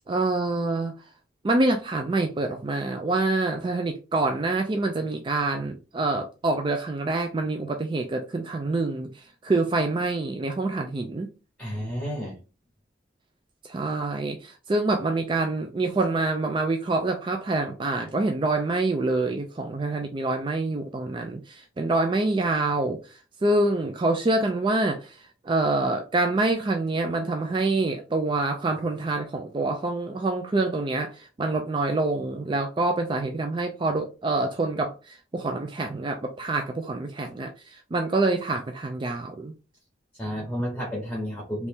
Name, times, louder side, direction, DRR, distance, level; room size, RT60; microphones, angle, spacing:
voice 1, 0.1-0.9 1.4-11.3 13.6-39.5, right 2 dB, 25° right, 0.3 m, -26 dB
voice 2, 11.6-12.4 40.2-41.7, equal, ahead, 1.0 m, -31 dB
3.1 x 2.7 x 3.5 m
head